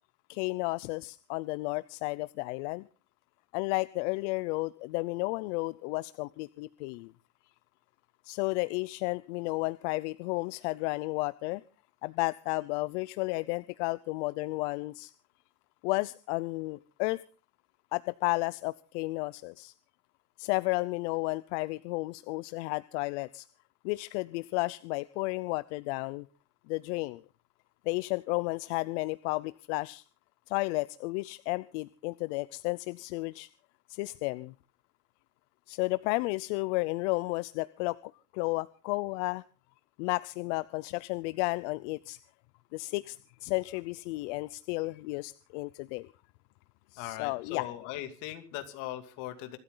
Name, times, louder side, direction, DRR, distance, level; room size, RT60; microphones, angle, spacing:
voice 1, 0.3-2.9 3.5-7.1 8.2-11.6 12.0-15.1 15.8-17.2 17.9-19.7 20.4-23.5 23.8-26.3 26.7-27.2 27.9-30.0 30.5-33.5 33.9-34.5 35.7-38.0 38.3-39.4 40.0-42.2 42.7-46.1 46.9-47.7, left 23 dB, 85° left, 17 dB, 0.7 m, -32 dB
voice 2, 47.0-49.6, left 14 dB, 60° left, 8 dB, 2.7 m, -39 dB
25.5 x 13.0 x 3.9 m, 0.36 s
cardioid pair, 165°, 34 cm